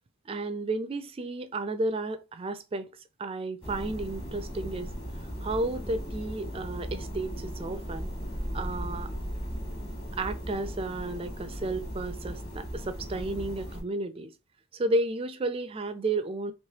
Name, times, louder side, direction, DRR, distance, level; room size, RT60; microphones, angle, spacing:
voice 1, 0.3-2.9 3.2-4.9 5.4-8.1 8.5-9.1 10.2-14.3 14.7-16.5, right 2 dB, 25° right, 0.3 m, -32 dB
sound 1, 3.6-13.8, equal, 25° left, 1.3 m, -37 dB
3.3 x 3.0 x 2.7 m
head